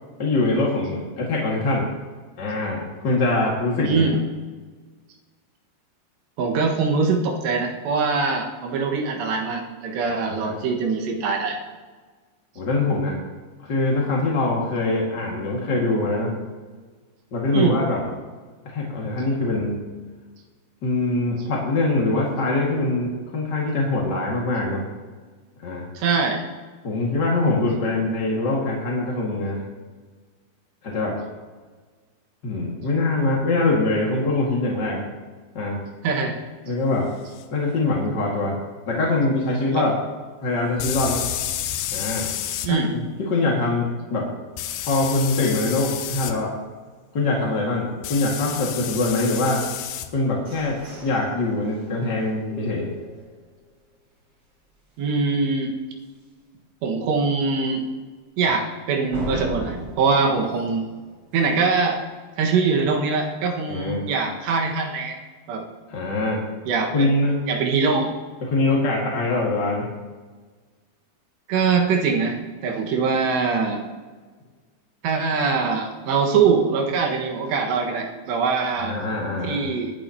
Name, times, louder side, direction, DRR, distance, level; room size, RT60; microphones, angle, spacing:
voice 1, 0.2-1.9 2.4-4.1 10.3-10.6 12.5-13.2 13.6-16.3 17.3-18.0 18.6-19.8 20.8-24.9 25.6-25.9 26.8-29.6 30.8-31.1 32.4-35.0 35.5-35.8 36.7-37.1 37.5-38.5 38.9-39.9 40.4-41.2 41.9-42.3 42.7-42.8 43.2-44.3 44.8-46.5 47.1-49.6 50.1-52.9 63.7-64.1 65.9-66.4 66.9-67.5 68.4-69.9 78.8-79.6, left 2 dB, 40° left, -3 dB, 1.6 m, -23 dB
voice 2, 3.9-4.2 6.4-11.6 17.5-17.8 26.0-26.4 36.0-36.3 39.7-40.0 42.6-42.9 55.0-55.8 56.8-57.8 58.4-60.9 61.3-62.0 62.4-65.2 65.5-65.6 66.7-67.1 67.5-68.1 71.5-73.8 75.0-78.9 79.4-79.9, right 4 dB, 80° right, 2 dB, 3.7 m, -23 dB
sound 1, 37.4-37.5 40.8-42.7 44.6-46.3 48.0-50.1, left 11 dB, 75° left, 2.5 m, -30 dB
sound 2, 50.3-53.7 54.2-54.3 54.7-55.1 55.4-55.5 56.0-56.1 59.1-61.8, equal, 35° right, 4.0 m, -38 dB
21.0 x 10.5 x 2.9 m, 1.4 s
omnidirectional pair, 5.0 m